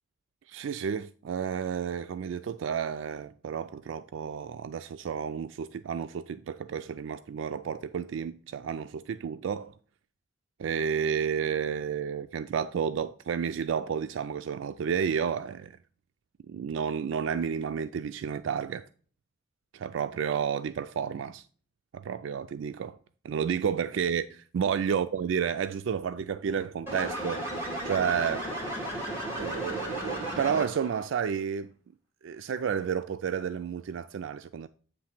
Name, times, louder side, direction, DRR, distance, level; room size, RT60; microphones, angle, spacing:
voice 1, 0.5-9.7 10.6-15.8 16.5-18.9 19.7-21.4 21.9-23.0 23.2-28.5 29.4-31.7 32.2-34.7, right 7 dB, 85° right, 0.3 m, -31 dB
sound 1, 26.9-31.0, right 1 dB, 15° right, 2.4 m, -34 dB
8.6 x 3.2 x 5.8 m
head